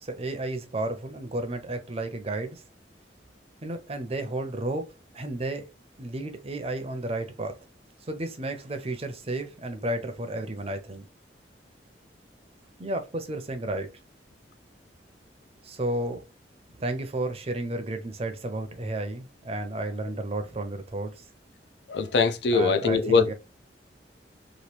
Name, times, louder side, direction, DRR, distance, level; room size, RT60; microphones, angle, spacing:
voice 1, 0.0-2.6 3.6-5.7 6.0-7.6 8.1-11.0 12.8-13.9 15.6-16.2 16.8-21.2 22.5-23.3, right 2 dB, 35° right, 0.5 m, -32 dB
voice 2, 21.9-23.3, left 4 dB, 70° left, 0.4 m, -22 dB
3.0 x 2.4 x 3.1 m
head